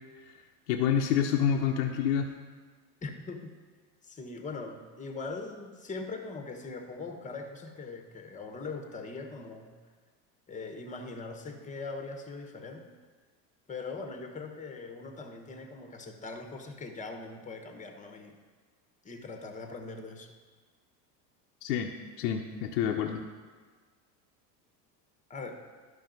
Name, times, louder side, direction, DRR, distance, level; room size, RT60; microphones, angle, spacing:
voice 1, 0.7-2.3 21.6-21.9 22.2-23.2, left 8 dB, 75° left, 2 dB, 0.8 m, -27 dB
voice 2, 3.0-3.5 4.0-9.8 10.5-12.9 13.7-18.4 19.0-20.3 25.3-25.6, left 3 dB, 15° left, 4 dB, 1.1 m, -41 dB
12.0 x 5.4 x 3.9 m, 1.5 s
hypercardioid pair, 90°, 50 cm